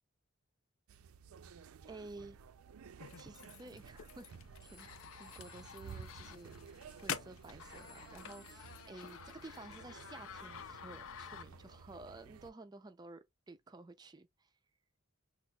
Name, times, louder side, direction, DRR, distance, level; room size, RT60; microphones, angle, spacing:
sound 1, 0.9-12.5, right 6 dB, 85° right, 0.4 m, -54 dB
voice 1, 1.8-2.4 3.2-4.9 5.2-6.5 7.0-14.5, right 2 dB, 20° right, 0.3 m, -52 dB
sound 2, 3.0-11.8, left 8 dB, 75° left, 0.4 m, -49 dB
Telephone, 4.6-10.2, left 1 dB, 20° left, 0.8 m, -65 dB
6.0 x 2.4 x 2.2 m
head